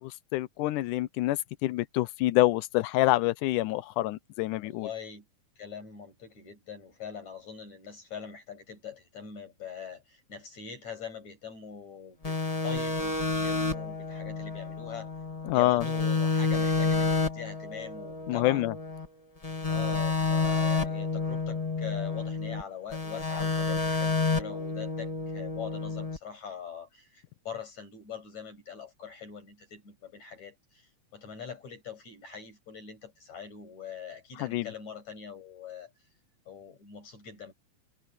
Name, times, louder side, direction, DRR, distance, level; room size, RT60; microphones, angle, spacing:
voice 1, 0.0-4.9 15.5-15.9 18.3-18.8 34.4-34.7, left 17 dB, 90° left, 2.2 m, -27 dB
voice 2, 4.6-5.3 5.6-15.1 15.5-18.6 19.7-30.6 31.1-35.9 36.5-37.5, left 7 dB, 60° left, 8.3 m, -42 dB
sound 1, 12.2-15.5 15.8-19.0 19.4-22.6 22.9-26.2, left 4 dB, 25° left, 0.8 m, -29 dB
omnidirectional pair, 3.6 m